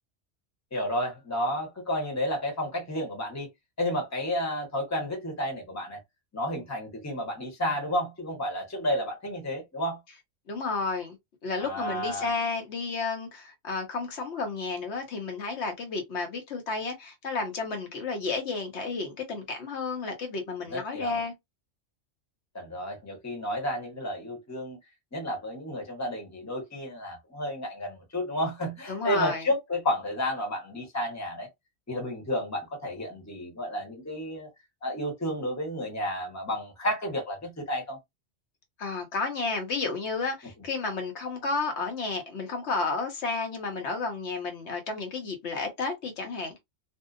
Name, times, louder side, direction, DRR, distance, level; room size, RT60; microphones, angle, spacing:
voice 1, 0.7-3.5 3.8-6.0 6.3-10.0 11.6-12.3 20.7-21.2 22.5-24.8 25.1-31.5 31.9-34.5 34.8-38.0, equal, 15° left, 0.8 m, -31 dB
voice 2, 10.5-11.2 11.4-21.3 28.9-29.4 38.8-46.6, left 4 dB, 70° left, 1.0 m, -32 dB
2.7 x 2.1 x 2.4 m
omnidirectional pair, 1.3 m